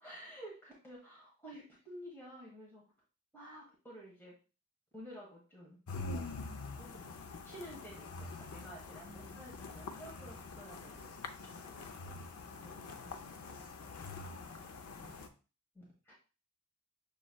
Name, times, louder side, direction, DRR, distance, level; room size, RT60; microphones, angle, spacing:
voice 1, 0.0-2.8 3.3-4.3 4.9-5.8 6.8-7.0 7.4-8.3 8.5-13.3 14.3-14.4 15.7-16.1, equal, 10° left, -5 dB, 1.5 m, -52 dB
sound 1, 5.9-15.3, left 3 dB, 85° left, 0.6 m, -45 dB
voice 2, 9.0-10.0 14.3-15.3, left 1 dB, 60° left, -3 dB, 2.6 m, -60 dB
6.7 x 3.1 x 2.3 m, 0.34 s
head